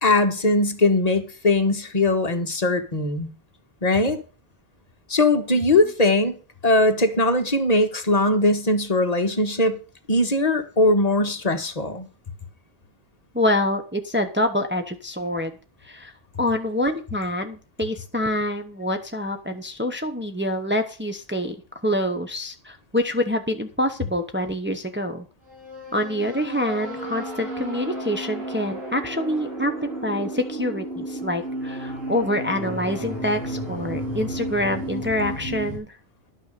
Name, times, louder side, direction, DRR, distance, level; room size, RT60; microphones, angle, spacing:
voice 1, 0.0-3.3 3.8-4.2 5.1-6.4 6.6-9.8 10.1-12.1, left 2 dB, 35° left, 1.5 m, -20 dB
voice 2, 5.5-5.9 13.3-15.5 15.8-16.1 16.4-21.6 21.8-25.3 25.9-29.7 30.0-35.9, left 1 dB, 10° right, 1.0 m, -26 dB
sound 1, 25.5-35.8, right 1 dB, 65° right, 6.2 m, -33 dB
11.0 x 6.3 x 6.7 m
omnidirectional pair, 1.1 m